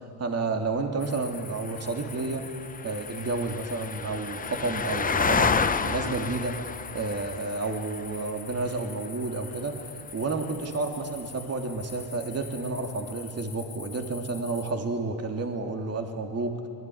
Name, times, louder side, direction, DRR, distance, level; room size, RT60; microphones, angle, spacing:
voice 1, 0.2-2.4 2.8-6.6 6.9-16.7, right 3 dB, 30° right, 3 dB, 3.1 m, -31 dB
sound 1, 1.0-14.7, left 5 dB, 15° left, 0.7 m, -33 dB
25.5 x 20.5 x 9.6 m, 2.5 s
cardioid pair, 120°, 49 cm